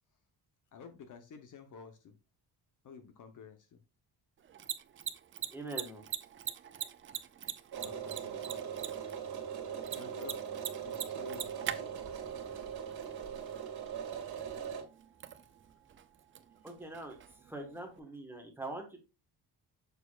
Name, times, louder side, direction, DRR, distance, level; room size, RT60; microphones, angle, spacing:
voice 1, 0.7-2.2 2.8-3.8 7.8-8.7 9.9-10.4 10.9-12.0, left 5 dB, 45° left, 8 dB, 0.8 m, -51 dB
Mechanisms, 4.4-18.0, right 9 dB, 30° right, 0.4 m, -45 dB
voice 2, 5.5-6.0 16.6-17.2 17.5-19.0, right 2 dB, 5° right, 2 dB, 1.3 m, -43 dB
sound 1, 7.7-14.8, right 8 dB, 60° right, 2.1 m, -40 dB
6.9 x 6.6 x 2.3 m, 0.30 s
cardioid pair, 170°, 42 cm